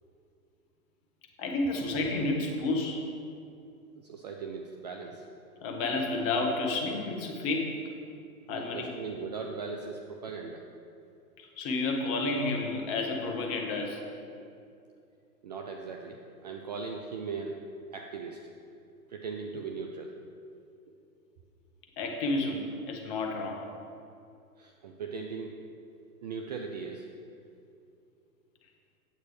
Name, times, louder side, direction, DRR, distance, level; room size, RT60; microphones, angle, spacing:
voice 1, 1.4-3.0 5.6-7.8 8.5-8.9 11.4-14.0 22.0-23.6, left 2 dB, 30° left, 2 dB, 1.2 m, -30 dB
voice 2, 4.0-5.2 8.5-10.6 15.4-17.6 17.9-18.4 19.1-20.2 24.6-25.5 26.2-27.1, right 5 dB, 30° right, 2 dB, 0.3 m, -39 dB
8.8 x 7.8 x 3.2 m, 2.5 s
hypercardioid pair, 115°, 45 cm